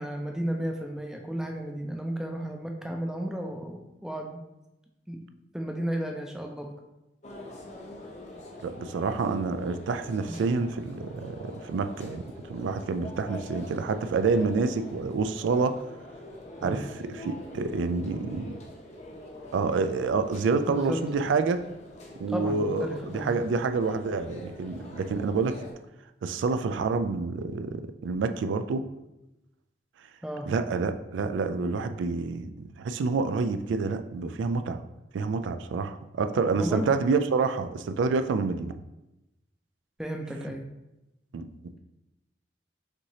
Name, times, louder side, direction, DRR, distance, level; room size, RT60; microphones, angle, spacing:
voice 1, 0.0-4.4 5.1-5.2 5.5-6.7 10.3-10.6 16.6-16.8 20.7-21.0 22.3-23.4 30.2-30.5 36.6-36.9 40.0-40.7, right 1 dB, 5° right, 2 dB, 0.4 m, -33 dB
sound 1, 7.2-25.7, left 1 dB, 35° left, 0.7 m, -45 dB
voice 2, 8.6-12.2 12.5-15.7 16.6-18.6 19.5-21.6 22.2-25.6 26.2-28.8 30.5-34.8 35.1-38.7 41.3-41.5, right 4 dB, 80° right, 9 dB, 0.3 m, -28 dB
5.9 x 2.8 x 2.8 m, 0.94 s
head